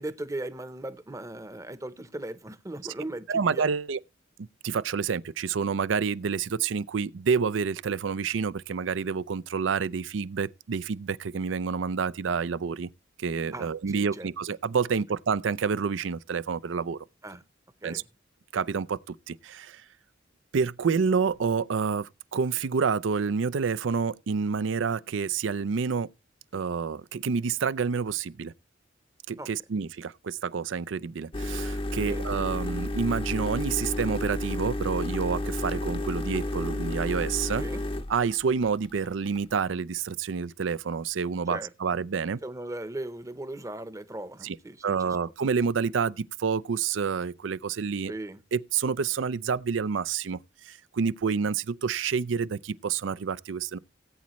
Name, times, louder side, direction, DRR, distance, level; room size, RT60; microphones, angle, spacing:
voice 1, 0.0-3.6 13.5-14.3 17.2-17.4 17.8-18.0 29.4-29.5 32.0-32.3 37.6-37.8 41.5-41.7 42.4-45.2 48.1-48.4, right 1 dB, 15° right, 0.8 m, -38 dB
voice 2, 3.3-4.0 4.4-12.9 13.2-17.0 17.8-18.0 18.5-19.8 20.5-26.1 26.5-28.5 29.3-37.6 38.1-42.4 44.4-44.6 44.8-48.1 48.5-50.4 50.6-53.8, right 5 dB, 85° right, 0.5 m, -28 dB
sound 1, 31.3-39.6, left 1 dB, 30° left, 0.7 m, -31 dB
17.5 x 8.5 x 3.1 m
head